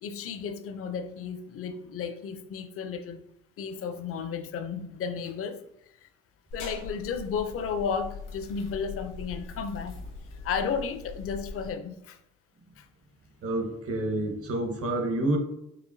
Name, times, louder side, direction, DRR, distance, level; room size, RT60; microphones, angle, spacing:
voice 1, 0.0-3.2 3.6-5.6 6.0-6.1 6.5-10.0 10.4-12.2 12.8-12.9, left 6 dB, 50° left, 0.4 m, -33 dB
sound 1, 6.5-11.7, left 3 dB, 90° left, 1.1 m, -41 dB
voice 2, 13.4-15.4, right 1 dB, 50° right, 0.9 m, -28 dB
4.7 x 2.6 x 2.6 m
cardioid pair, 90°, 30 cm